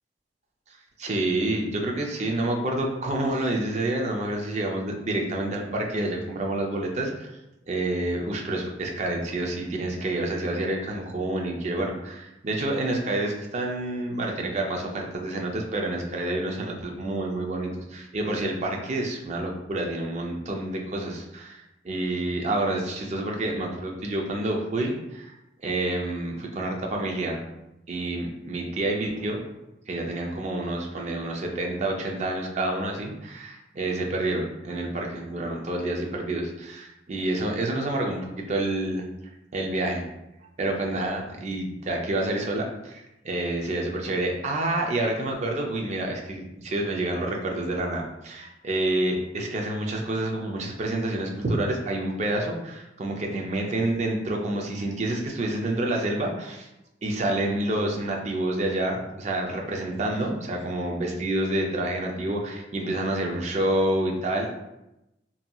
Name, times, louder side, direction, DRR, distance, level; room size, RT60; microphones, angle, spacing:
voice 1, 1.0-7.3 7.7-25.3 25.6-27.4 27.9-29.4 29.9-39.1 39.5-40.1 40.6-56.7 57.0-64.6, right 1 dB, 40° right, 1 dB, 0.4 m, -28 dB
2.7 x 2.6 x 2.3 m, 0.92 s
head